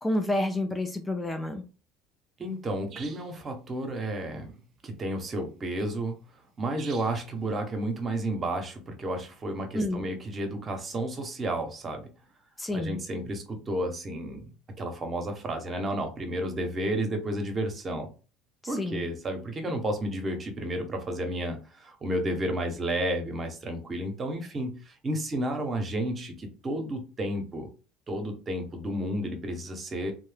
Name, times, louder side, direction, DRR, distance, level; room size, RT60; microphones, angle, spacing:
voice 1, 0.0-1.6 9.7-10.0 12.6-13.0 18.6-19.1, left 1 dB, 15° left, 6 dB, 0.5 m, -29 dB
voice 2, 2.4-4.5 4.8-6.2 6.6-12.0 12.7-14.5 14.8-18.1 18.7-27.7 28.1-30.1, right 1 dB, 35° right, 5 dB, 0.8 m, -32 dB
sound 1, 2.9-3.4 6.8-7.3, right 7 dB, 50° right, 0.4 m, -46 dB
2.6 x 2.1 x 3.3 m, 0.35 s
hypercardioid pair, 80°, 0 cm